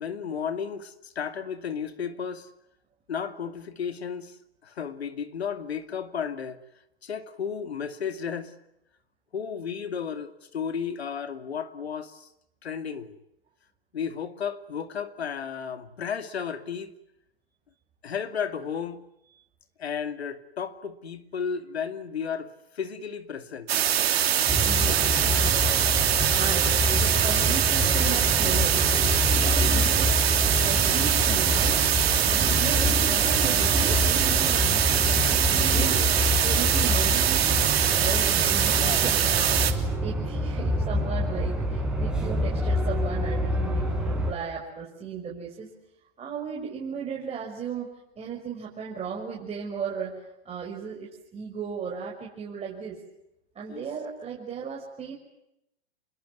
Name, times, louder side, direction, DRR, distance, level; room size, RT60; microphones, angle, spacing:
voice 1, 0.0-2.5 3.1-4.3 4.6-6.6 7.0-8.5 9.3-12.3 12.6-13.2 13.9-16.9 18.0-19.0 19.8-23.7 38.7-39.0 53.7-53.8, left 7 dB, 85° left, 2.6 m, -33 dB
sound 1, 23.7-39.7, right 10 dB, 75° right, 3.3 m, -23 dB
sound 2, 24.5-44.3, equal, ahead, 6.5 m, -27 dB
voice 2, 24.6-25.0 25.3-25.7 26.2-28.8 29.3-30.1 30.6-37.5 37.9-45.7 46.2-47.9 48.2-50.2 50.4-53.0 53.5-55.1, right 7 dB, 20° right, 6.0 m, -36 dB
27.5 x 22.5 x 9.5 m
hypercardioid pair, 120°, 31 cm